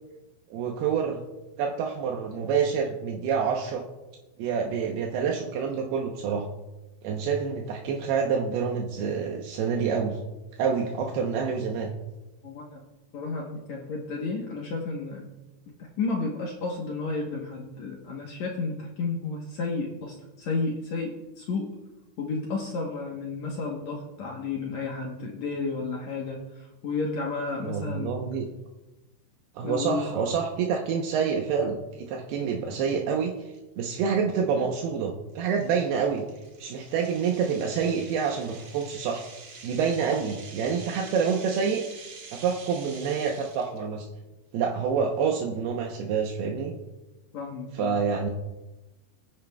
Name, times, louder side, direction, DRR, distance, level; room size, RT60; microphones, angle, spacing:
voice 1, 0.5-1.2 1.6-3.8 4.4-6.5 7.0-10.2 10.6-11.9 27.6-28.5 29.6-33.3 33.8-36.2 36.6-39.2 39.6-41.8 42.3-44.1 44.5-46.7 47.7-48.3, right 6 dB, 80° right, 1 dB, 2.9 m, -27 dB
voice 2, 12.4-12.8 13.1-15.3 16.0-21.1 21.4-21.7 22.2-28.2 29.6-30.1 47.3-47.9, left 3 dB, 65° left, -1 dB, 1.8 m, -32 dB
sound 1, 33.6-33.7 34.2-34.4 34.8-34.9 35.4-43.8, right 4 dB, 55° right, 1.4 m, -46 dB
22.0 x 9.6 x 2.3 m, 1.1 s
omnidirectional pair, 4.6 m